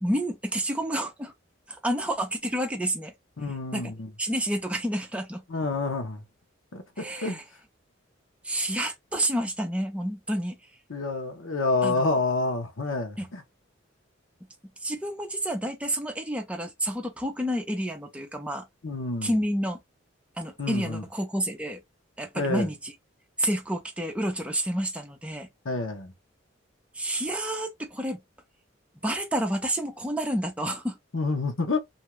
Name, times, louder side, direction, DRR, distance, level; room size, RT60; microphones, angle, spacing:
voice 1, 0.0-1.3 1.7-3.1 3.7-3.9 4.2-5.4 7.0-7.4 8.4-10.6 11.8-12.2 13.2-13.3 14.8-18.7 19.2-19.8 20.4-21.8 22.2-22.9 23.4-25.5 26.9-28.2 29.0-31.0, right 1 dB, 5° right, 0.6 m, -29 dB
voice 2, 3.4-4.1 5.5-6.2 6.7-7.4 10.9-13.4 18.8-19.4 20.6-21.0 22.3-22.7 25.6-26.1 31.1-31.8, left 3 dB, 80° left, 0.9 m, -28 dB
2.6 x 2.3 x 3.0 m
head